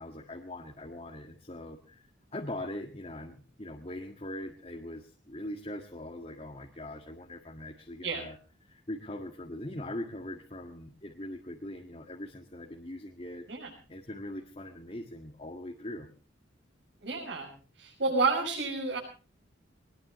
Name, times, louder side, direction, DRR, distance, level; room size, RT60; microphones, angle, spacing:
voice 1, 0.0-2.0 2.3-8.4 8.6-13.5 13.9-16.1, left 1 dB, 30° left, 1 dB, 1.9 m, -41 dB
voice 2, 17.0-17.5 17.8-19.0, right 3 dB, 65° right, -4 dB, 6.2 m, -30 dB
22.5 x 20.0 x 3.1 m, 0.35 s
head